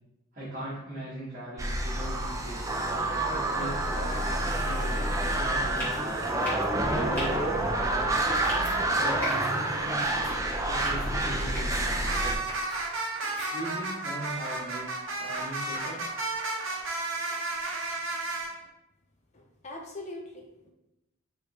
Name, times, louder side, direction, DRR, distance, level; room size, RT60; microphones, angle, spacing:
voice 1, 0.3-2.7 3.3-6.0 6.9-7.9 9.0-10.2 10.6-12.5 13.5-14.9 15.2-16.1, right 1 dB, 35° right, -10 dB, 1.2 m, -39 dB
sound 1, 1.6-12.3, right 1 dB, 15° right, 0.3 m, -28 dB
sound 2, 4.7-7.5 8.0-18.5, right 2 dB, 60° right, 0.7 m, -36 dB
sound 3, 5.8-6.0 6.4-6.7 7.1-7.3 8.3-8.7 9.2-9.5 10.0-10.3 10.8-11.1 11.5-11.8 12.5-12.8 13.2-13.5, left 1 dB, 10° left, 1.5 m, -38 dB
voice 2, 19.3-20.7, left 2 dB, 30° left, 1 dB, 0.6 m, -42 dB
4.7 x 3.1 x 2.9 m, 0.92 s
head